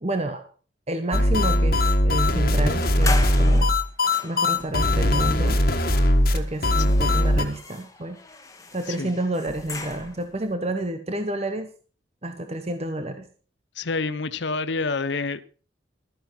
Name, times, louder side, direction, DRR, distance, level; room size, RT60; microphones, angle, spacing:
voice 1, 0.0-0.4 0.9-3.8 4.2-5.6 6.3-8.2 8.7-11.7 12.2-13.3, right 1 dB, 35° right, 1.1 m, -29 dB
sound 1, 1.1-7.4, left 1 dB, 50° left, 1.7 m, -20 dB
sound 2, 2.8-10.3, left 3 dB, 20° left, 1.7 m, -37 dB
voice 2, 13.8-15.4, left 4 dB, 75° left, 0.7 m, -28 dB
13.5 x 10.0 x 5.8 m
head